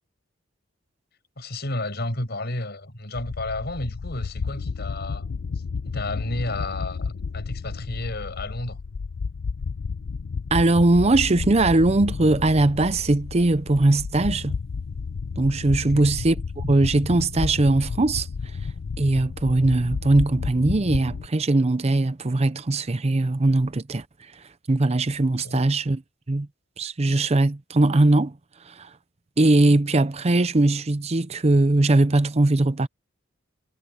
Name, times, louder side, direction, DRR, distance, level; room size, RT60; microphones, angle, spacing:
voice 1, 1.4-5.3 5.8-8.8 15.8-16.1 25.4-25.6, left 2 dB, 55° left, 6.8 m, -32 dB
sound 1, 3.2-21.3, left 5 dB, 80° left, 0.5 m, -32 dB
voice 2, 10.5-14.6 15.4-18.3 19.0-24.0 24.7-26.0 26.3-26.5 26.8-28.3 28.7-28.9 29.4-32.9, right 2 dB, 35° right, 0.6 m, -20 dB
head